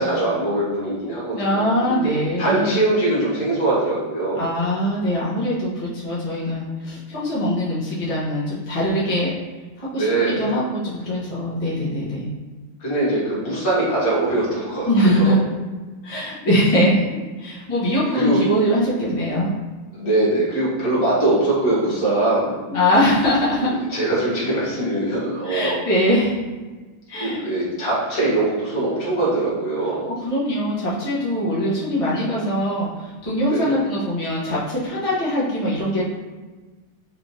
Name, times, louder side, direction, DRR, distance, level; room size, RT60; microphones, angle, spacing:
voice 1, 0.0-2.0 2.4-4.5 9.9-10.5 12.8-15.4 18.1-18.4 19.9-22.5 23.9-25.8 27.2-30.1 33.5-33.7, right 2 dB, 50° left, -7 dB, 1.7 m, -22 dB
voice 2, 1.3-2.8 4.3-9.3 9.8-12.3 14.9-15.4 16.0-19.5 22.7-23.8 25.4-26.4 27.1-27.4 30.2-36.0, equal, 30° left, -8 dB, 0.6 m, -22 dB
4.3 x 3.3 x 2.7 m, 1.3 s
omnidirectional pair, 2.1 m